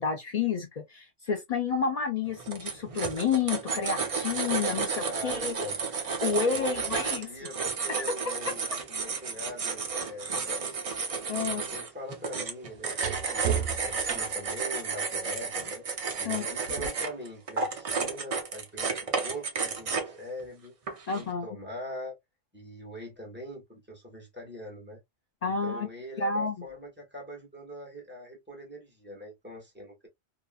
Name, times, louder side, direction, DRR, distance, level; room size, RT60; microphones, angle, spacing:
voice 1, 0.0-5.6 6.2-7.3 11.3-11.6 16.2-16.5 21.1-21.5 25.4-25.9 26.2-26.6, left 5 dB, 80° left, 0.3 m, -30 dB
sound 1, 2.3-20.2 20.9-21.2, right 5 dB, 45° right, 0.4 m, -32 dB
voice 2, 5.1-5.8 6.3-10.8 11.4-15.8 16.2-22.2 22.5-25.0 25.5-30.1, equal, 10° right, 1.2 m, -42 dB
sound 2, 5.3-5.5 6.5-10.6 10.9-14.6 16.7-16.9, right 8 dB, 70° right, 0.9 m, -38 dB
2.8 x 2.3 x 2.2 m
omnidirectional pair, 1.2 m